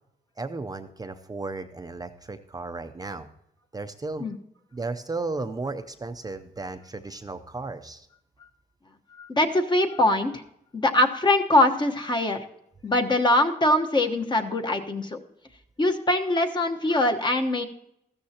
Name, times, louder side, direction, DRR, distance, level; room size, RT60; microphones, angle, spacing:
voice 1, 0.4-3.3 3.7-4.3 4.7-8.1, right 3 dB, 25° right, 7 dB, 0.6 m, -34 dB
voice 2, 9.2-10.4 10.7-12.4 12.8-15.2 15.8-17.6, left 1 dB, 25° left, 4 dB, 1.1 m, -22 dB
14.5 x 13.0 x 2.8 m, 0.79 s
cardioid pair, 110°, 17 cm